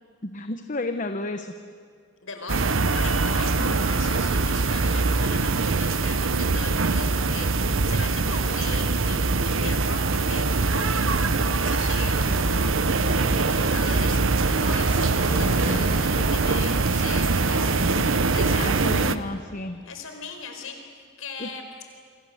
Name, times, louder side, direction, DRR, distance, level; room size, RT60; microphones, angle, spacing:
voice 1, 0.2-1.5 3.6-3.8 18.5-19.8 21.4-21.5, left 2 dB, 40° left, 7 dB, 1.1 m, -32 dB
voice 2, 2.2-12.8 13.4-17.9 18.3-19.1 19.8-20.8 21.2-21.6, left 4 dB, 85° left, 4 dB, 4.9 m, -39 dB
sound 1, 2.5-19.2, right 3 dB, 70° right, 1.0 m, -23 dB
sound 2, 12.2-19.0 19.3-19.4, right 1 dB, 90° right, 7.2 m, -35 dB
27.5 x 25.5 x 8.1 m, 2.2 s
head